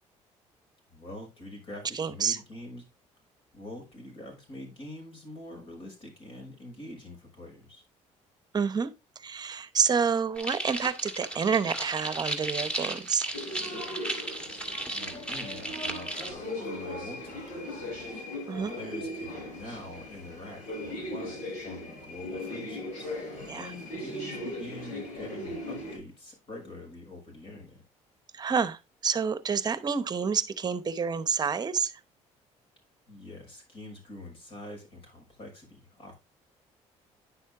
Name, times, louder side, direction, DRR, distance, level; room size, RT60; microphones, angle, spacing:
voice 1, 0.9-2.9 3.5-7.8 14.9-27.8 33.1-36.2, left 1 dB, 45° left, 6.4 m, -45 dB
voice 2, 1.9-2.4 8.5-8.9 9.2-13.3 14.1-14.3 18.5-18.7 23.5-23.7 28.3-31.9, right 6 dB, 35° right, 1.0 m, -28 dB
sound 1, 10.4-16.3, right 1 dB, 10° left, 2.0 m, -35 dB
sound 2, 13.3-26.0, left 1 dB, 90° left, 5.5 m, -38 dB
10.0 x 6.3 x 3.6 m
cardioid pair, 115°, 13 cm